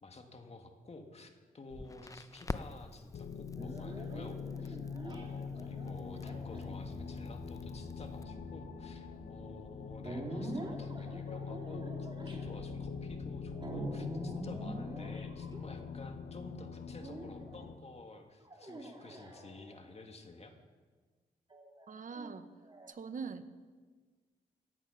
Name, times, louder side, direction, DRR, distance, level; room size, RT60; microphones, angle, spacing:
voice 1, 0.0-20.5, left 2 dB, 40° left, 5 dB, 2.1 m, -51 dB
Crackle, 1.7-8.2, left 3 dB, 20° left, 0.7 m, -48 dB
sound 1, 3.1-17.8, left 6 dB, 80° left, 0.9 m, -43 dB
sound 2, 3.6-16.2 17.0-17.6 18.4-19.9 21.5-22.9, right 1 dB, 30° right, 3.2 m, -45 dB
voice 2, 21.9-22.5 22.9-23.5, right 5 dB, 55° right, 11 dB, 1.0 m, -42 dB
16.0 x 9.1 x 5.8 m, 1.4 s
supercardioid pair, 50°, 16 cm